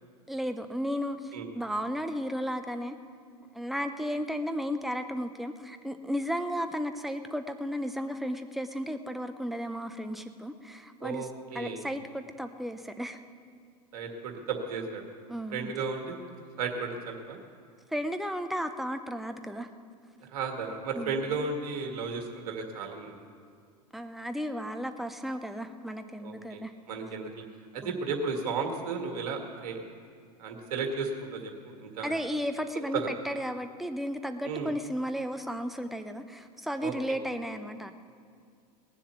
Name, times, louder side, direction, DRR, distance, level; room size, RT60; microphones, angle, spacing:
voice 1, 0.3-3.0 3.5-11.3 11.5-13.2 15.3-15.7 17.9-19.7 21.0-21.2 23.9-26.7 27.0-27.1 27.8-27.9 32.0-37.9, equal, ahead, 8 dB, 0.7 m, -34 dB
voice 2, 11.0-11.8 13.9-15.0 15.5-16.3 16.6-17.4 20.3-23.2 26.2-26.6 26.9-27.3 27.7-29.8 30.4-32.1 32.9-33.1 34.4-34.7 36.8-36.9, right 4 dB, 60° right, 3 dB, 1.9 m, -34 dB
19.0 x 7.3 x 7.0 m, 2.3 s
figure-of-eight pair, 85°, 21 cm